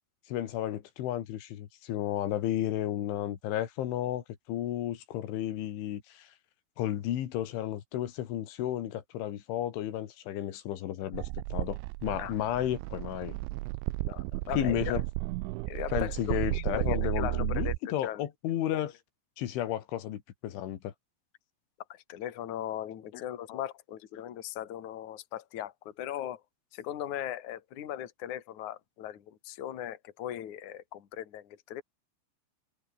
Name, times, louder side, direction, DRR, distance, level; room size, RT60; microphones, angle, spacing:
voice 1, 0.3-6.3 6.8-13.4 14.6-15.0 15.9-19.0 19.4-20.9 23.5-23.7, left 12 dB, 85° left, 4.4 m, -33 dB
sound 1, 11.1-17.8, right 21 dB, 90° right, 3.0 m, -33 dB
voice 2, 14.0-14.9 15.7-18.2 21.9-26.4 26.7-31.8, left 11 dB, 50° left, 3.1 m, -39 dB
omnidirectional pair, 5.3 m